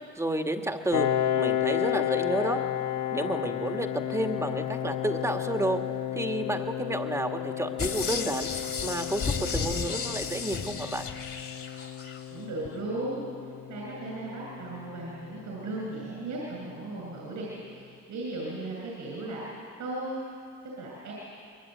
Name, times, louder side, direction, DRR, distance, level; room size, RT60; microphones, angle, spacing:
voice 1, 0.2-1.1 1.4-2.6 3.1-5.8 6.1-8.5 8.8-11.1, right 1 dB, 10° right, 4 dB, 2.1 m, -30 dB
Piano, 0.9-16.3, left 11 dB, 80° left, 1.1 m, -33 dB
sound 1, 7.8-12.2 12.7-12.8, left 5 dB, 45° left, 2.8 m, -33 dB
voice 2, 12.3-19.4 19.8-20.2 20.6-21.1, right 2 dB, 75° right, -3 dB, 7.7 m, -36 dB
26.0 x 22.0 x 9.4 m, 2.3 s
cardioid pair, 90°, 30 cm